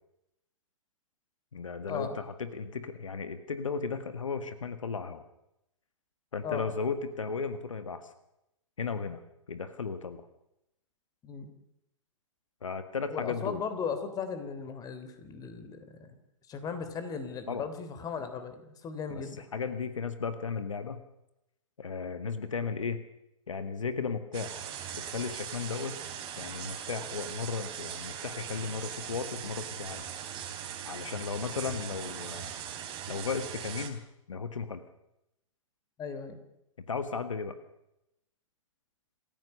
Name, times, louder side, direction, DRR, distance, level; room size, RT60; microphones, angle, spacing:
voice 1, 1.5-5.2 6.3-8.1 8.8-9.2 9.5-10.2 12.6-13.6 17.5-17.7 19.1-19.2 19.5-21.0 21.8-23.0 23.5-24.6 24.9-26.0 26.4-30.1 30.9-32.5 33.1-34.0 34.3-34.8 36.9-37.6, left 5 dB, 70° left, 10 dB, 1.8 m, -35 dB
voice 2, 13.1-16.1 16.5-19.4 36.0-36.4, left 6 dB, 20° left, 10 dB, 3.5 m, -37 dB
sound 1, 24.3-33.9, right 9 dB, 30° right, 3.7 m, -40 dB
27.5 x 15.0 x 6.8 m, 0.84 s
figure-of-eight pair, 115°, 17 cm